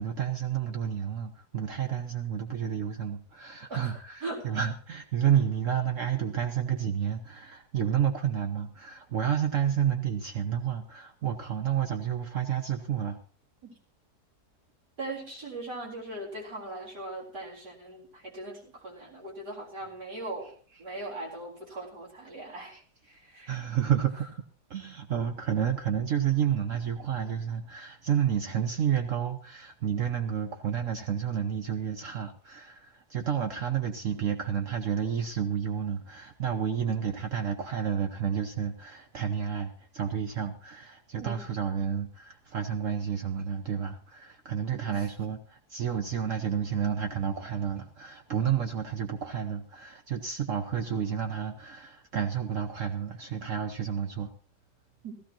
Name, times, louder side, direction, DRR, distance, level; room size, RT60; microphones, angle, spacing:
voice 1, 0.0-13.2 20.7-21.1 22.7-22.8 23.4-24.4 24.7-54.3, right 8 dB, 60° right, 7 dB, 1.1 m, -30 dB
voice 2, 3.7-4.4 13.6-13.7 15.0-20.5 20.8-22.8 23.1-23.6 41.2-41.5 44.8-45.0 55.0-55.2, right 2 dB, 85° right, -3 dB, 4.5 m, -40 dB
16.0 x 15.0 x 2.9 m, 0.40 s
omnidirectional pair, 1.7 m